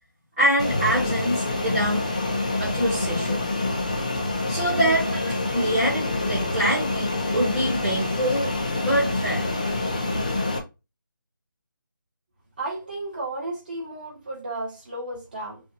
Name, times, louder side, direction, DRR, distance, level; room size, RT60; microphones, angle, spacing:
voice 1, 0.4-2.0 2.6-3.5 4.5-5.1 5.5-8.5 8.8-9.4, equal, 5° right, 0.8 m, -24 dB
Fixed-wing aircraft airplane, 0.6-10.6, left 2 dB, 20° left, 0.4 m, -26 dB
voice 2, 12.6-15.6, right 2 dB, 25° right, 1.5 m, -33 dB
5.4 x 2.5 x 2.7 m
figure-of-eight pair, 175°, 11 cm